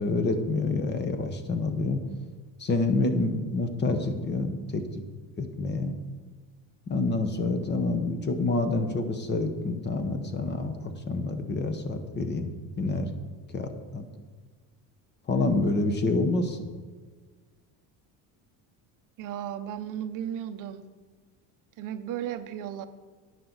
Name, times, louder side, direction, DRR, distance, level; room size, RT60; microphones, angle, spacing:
voice 1, 0.0-2.0 2.6-5.0 5.4-5.9 6.9-13.1 13.5-14.1 15.3-16.7, left 3 dB, 25° left, 7 dB, 1.0 m, -28 dB
voice 2, 19.2-20.9 21.8-22.9, right 10 dB, 50° right, 10 dB, 0.7 m, -35 dB
10.5 x 9.8 x 4.0 m, 1.5 s
cardioid pair, 150°, 41 cm